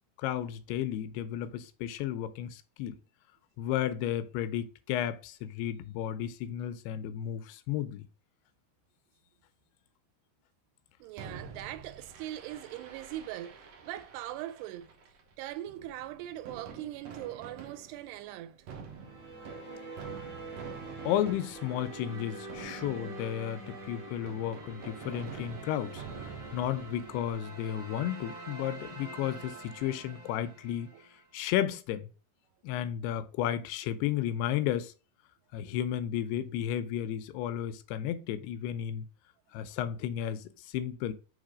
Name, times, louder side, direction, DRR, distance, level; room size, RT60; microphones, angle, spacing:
voice 1, 0.2-3.0 3.6-8.0 21.0-30.9 31.3-32.0 32.6-34.9 35.5-39.1 39.5-41.1, left 11 dB, 85° left, 2.7 m, -33 dB
voice 2, 11.0-14.9 15.4-18.7 30.9-31.0, right 13 dB, 90° right, 2.8 m, -41 dB
Fireworks, 11.2-27.3, right 6 dB, 70° right, 1.6 m, -48 dB
sound 1, 18.9-31.3, right 3 dB, 45° right, 3.1 m, -45 dB
6.6 x 3.3 x 4.9 m
omnidirectional pair, 4.7 m